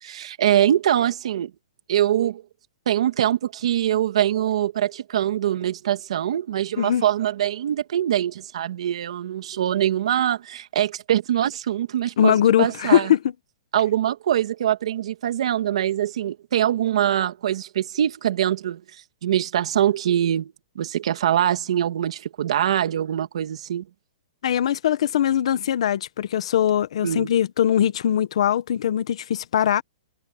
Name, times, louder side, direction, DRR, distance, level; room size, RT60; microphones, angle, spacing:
voice 1, 0.0-1.5 1.9-2.4 2.9-13.1 13.7-18.8 19.2-23.8 27.0-27.3, right 11 dB, 55° right, 2.1 m, -23 dB
voice 2, 12.2-13.2 24.4-29.8, left 10 dB, 55° left, 1.2 m, -21 dB
hypercardioid pair, 180°, 4 cm